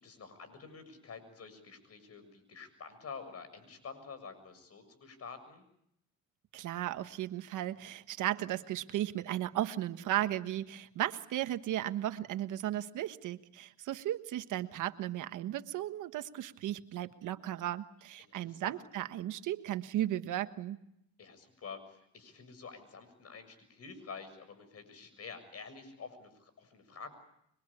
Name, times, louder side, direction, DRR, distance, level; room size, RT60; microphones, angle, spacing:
voice 1, 0.0-5.6 18.2-18.8 21.2-27.1, left 5 dB, 55° left, 10 dB, 7.0 m, -48 dB
voice 2, 6.5-20.8, right 13 dB, 85° right, 10 dB, 1.4 m, -35 dB
26.0 x 24.0 x 8.6 m, 0.78 s
cardioid pair, 90°, 30 cm